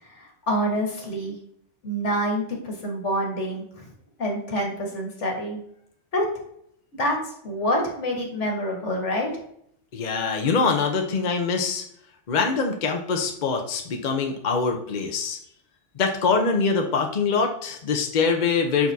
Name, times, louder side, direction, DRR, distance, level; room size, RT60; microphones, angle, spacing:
voice 1, 0.1-1.4 1.8-3.9 4.2-5.6 6.1-6.3 6.9-7.2 7.4-9.3, equal, 75° left, 1 dB, 1.9 m, -27 dB
voice 2, 9.9-11.8 12.3-15.4 16.0-18.9, left 4 dB, 45° left, 3 dB, 0.8 m, -24 dB
7.0 x 5.9 x 2.7 m, 0.69 s
omnidirectional pair, 1.2 m